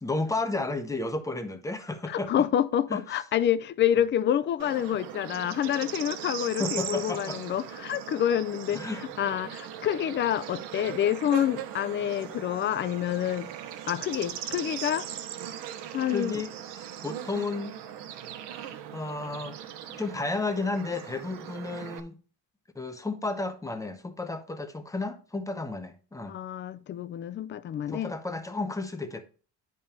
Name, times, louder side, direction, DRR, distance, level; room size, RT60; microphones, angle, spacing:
voice 1, 0.0-2.5 2.9-3.0 6.6-7.4 8.7-9.0 16.1-17.8 18.9-22.2 22.7-26.4 27.9-29.2, left 3 dB, 10° left, 0.7 m, -32 dB
voice 2, 2.1-8.9 9.2-13.5 13.9-15.1 15.9-16.4 26.3-28.1, left 10 dB, 30° left, 0.4 m, -28 dB
Bird / Insect, 4.6-22.0, right 10 dB, 80° right, 1.1 m, -39 dB
10.5 x 5.3 x 2.7 m
cardioid pair, 155°, 41 cm